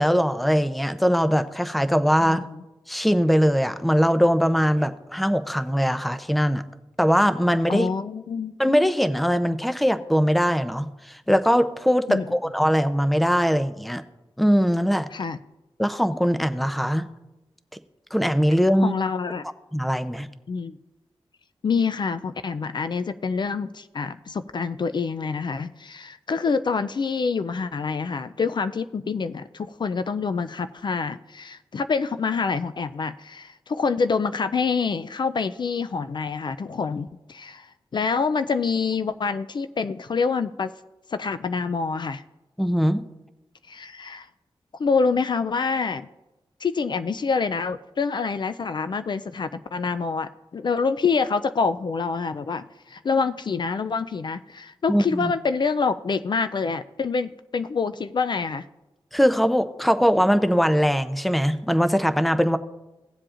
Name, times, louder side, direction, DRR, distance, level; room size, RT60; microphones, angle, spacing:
voice 1, 0.0-2.5 2.9-6.6 7.0-7.9 8.6-14.0 14.4-15.1 15.8-17.1 18.1-18.9 19.7-20.3 42.6-43.0 54.9-55.3 59.1-62.6, equal, ahead, 11 dB, 0.5 m, -21 dB
voice 2, 2.2-2.6 7.7-8.5 12.1-12.3 15.1-15.4 18.8-19.5 20.5-20.7 21.6-40.7 41.1-42.2 43.7-44.3 44.8-46.1 46.6-58.7, left 5 dB, 55° left, 11 dB, 0.4 m, -26 dB
17.5 x 7.5 x 2.5 m, 1.0 s
wide cardioid pair, 80°, 10 cm